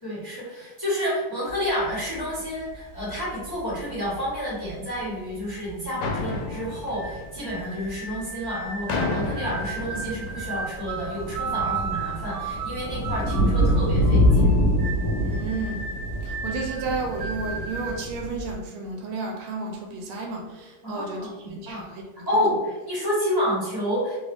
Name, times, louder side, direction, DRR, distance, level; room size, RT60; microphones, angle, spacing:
voice 1, 0.0-14.6 20.8-21.8 22.3-24.2, equal, 15° left, -9 dB, 1.1 m, -29 dB
sound 1, 1.5-1.6 1.8-2.3 2.7-4.7 5.4-5.5 5.6-5.7 6.0-6.2 6.8-7.5 7.8-18.5, equal, 55° left, 1.1 m, -26 dB
sound 2, 6.0-8.0 8.9-10.8, left 3 dB, 85° left, 1.5 m, -31 dB
sound 3, 6.4-18.0, right 5 dB, 65° right, 1.3 m, -35 dB
voice 2, 15.2-16.0 16.2-22.5, right 3 dB, 80° right, 1 dB, 1.4 m, -33 dB
3.6 x 2.3 x 3.4 m, 1.1 s
omnidirectional pair, 2.4 m